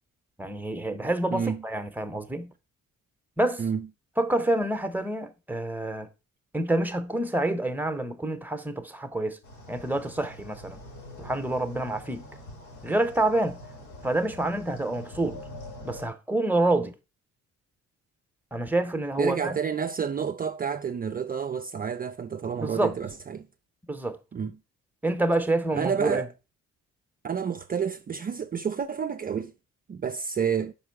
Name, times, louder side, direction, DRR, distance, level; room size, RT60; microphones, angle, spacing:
voice 1, 0.4-2.5 3.4-3.6 4.2-6.1 6.5-9.4 9.7-10.8 11.2-12.2 12.8-13.6 14.0-15.4 15.8-16.9 18.5-19.6 22.5-22.9 23.9-24.2 25.0-26.2, right 2 dB, 5° right, 1.0 m, -27 dB
voice 2, 1.3-1.6 3.6-3.9 19.2-23.5 24.3-24.5 25.7-26.3 27.2-29.5 29.9-30.7, right 7 dB, 30° right, 0.4 m, -29 dB
sound 1, 9.4-16.0, left 1 dB, 75° left, 3.2 m, -44 dB
5.4 x 4.8 x 4.6 m
cardioid pair, 90°, 30 cm